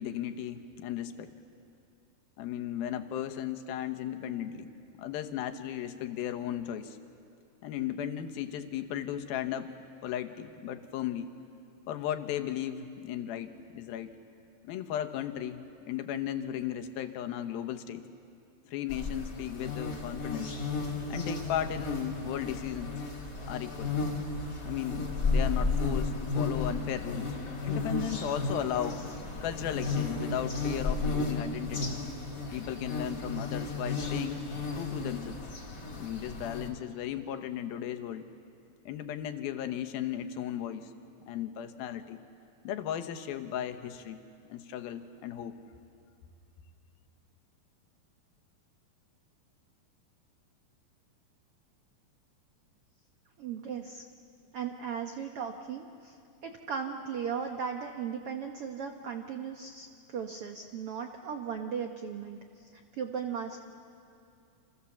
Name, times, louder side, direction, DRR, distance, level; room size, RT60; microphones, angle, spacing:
voice 1, 0.0-1.3 2.4-7.0 7.6-11.3 11.9-14.2 14.6-18.0 18.7-20.5 21.1-23.0 23.5-23.9 24.7-27.4 27.6-29.0 29.4-32.0 32.5-34.4 34.7-35.4 35.9-38.2 38.9-40.9 41.3-42.2 42.6-44.2 44.5-45.6, left 10 dB, 85° left, 7 dB, 3.0 m, -36 dB
sound 1, 18.9-36.7, left 3 dB, 25° left, 2.4 m, -33 dB
voice 2, 53.4-54.0 54.5-63.6, right 7 dB, 75° right, 4 dB, 1.3 m, -37 dB
29.5 x 26.5 x 7.2 m, 2.5 s
omnidirectional pair, 4.2 m